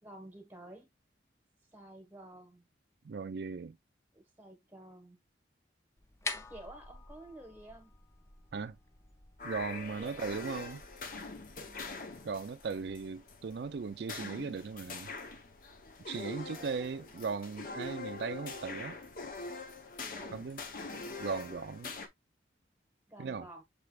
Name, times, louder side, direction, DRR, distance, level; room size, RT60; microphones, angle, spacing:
voice 1, 0.0-0.9 1.7-2.7 4.1-5.2 6.5-7.9 10.0-10.3 11.5-12.0 16.2-17.2 20.0-20.4 23.1-23.6, right 1 dB, 10° right, 1.1 m, -52 dB
voice 2, 3.0-3.8 8.5-8.8 9.4-10.8 12.2-15.1 16.1-19.0 20.3-20.6 21.2-21.9 23.2-23.5, right 5 dB, 65° right, 0.4 m, -38 dB
sound 1, 6.0-11.9, left 3 dB, 15° left, 0.4 m, -47 dB
sound 2, 9.4-22.1, left 3 dB, 50° left, 0.7 m, -44 dB
6.7 x 3.3 x 2.2 m
head